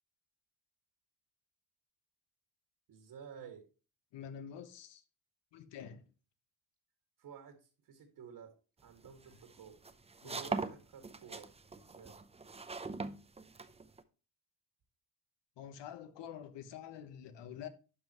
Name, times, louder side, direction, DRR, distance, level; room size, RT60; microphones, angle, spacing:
voice 1, 2.9-3.7 7.2-8.5 8.8-9.8 10.2-12.2, right 7 dB, 55° right, 2.0 m, -53 dB
voice 2, 4.1-5.0 5.5-6.1 10.2-10.4 15.6-17.7, left 9 dB, 70° left, 1.3 m, -47 dB
sound 1, 8.9-14.0, right 4 dB, 15° right, 0.6 m, -41 dB
11.5 x 5.5 x 3.0 m
cardioid pair, 110°, 44 cm